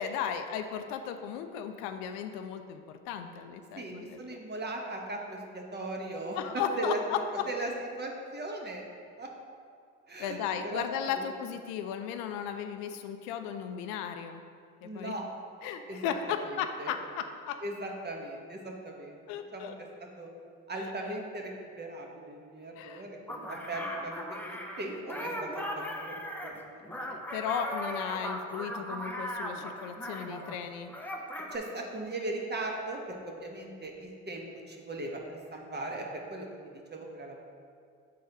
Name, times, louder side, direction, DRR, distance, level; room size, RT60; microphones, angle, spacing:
voice 1, 0.0-4.2 6.4-7.5 10.2-14.4 14.8-15.1 15.6-17.6 19.3-19.7 20.8-20.9 22.8-23.0 27.0-30.9, left 8 dB, 70° left, 8 dB, 0.5 m, -35 dB
voice 2, 3.8-6.4 6.8-7.0 7.5-7.7 8.0-8.9 9.1-9.3 10.1-10.9 11.1-11.3 14.8-15.3 15.9-16.0 16.4-16.9 17.6-19.2 19.5-19.7 20.2-20.3 20.7-21.5 21.8-26.9 31.5-36.5 36.9-37.4, right 2 dB, 25° right, 0 dB, 1.2 m, -38 dB
sound 1, 23.3-30.6 30.9-31.6, equal, 5° left, 0.7 m, -38 dB
7.4 x 4.0 x 3.9 m, 2.2 s
hypercardioid pair, 60°, 40 cm